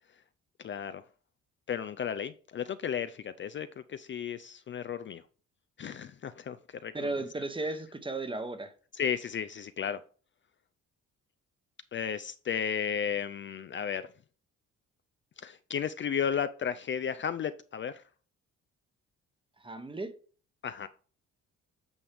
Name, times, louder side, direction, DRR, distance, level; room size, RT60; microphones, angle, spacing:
voice 1, 0.6-1.0 1.7-5.2 5.8-7.1 8.9-10.0 11.9-14.1 15.4-18.0 20.6-20.9, left 8 dB, 40° left, 0.4 m, -34 dB
voice 2, 6.9-8.7 19.6-20.1, right 2 dB, 15° right, 1.0 m, -35 dB
8.6 x 5.4 x 3.5 m
cardioid pair, 90°, 30 cm